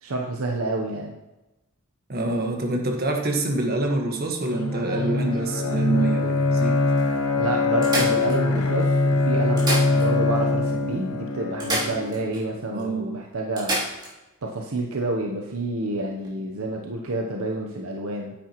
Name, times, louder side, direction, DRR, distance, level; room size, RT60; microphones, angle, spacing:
voice 1, 0.0-1.1 7.4-13.8 14.4-18.3, right 2 dB, 70° right, 1 dB, 0.8 m, -29 dB
voice 2, 2.1-6.8 12.7-13.1, right 2 dB, 45° right, 2 dB, 1.4 m, -26 dB
sound 1, 4.3-5.9 6.6-6.7 7.0-7.1 7.8-8.8 9.4-10.4 10.7-10.8 11.6-12.5 12.8-12.9 13.6-14.1 16.1-16.3, right 1 dB, 20° right, 3.1 m, -31 dB
Bowed string instrument, 4.4-12.3, left 3 dB, 90° left, 0.9 m, -23 dB
9.8 x 8.7 x 3.0 m, 1.0 s
head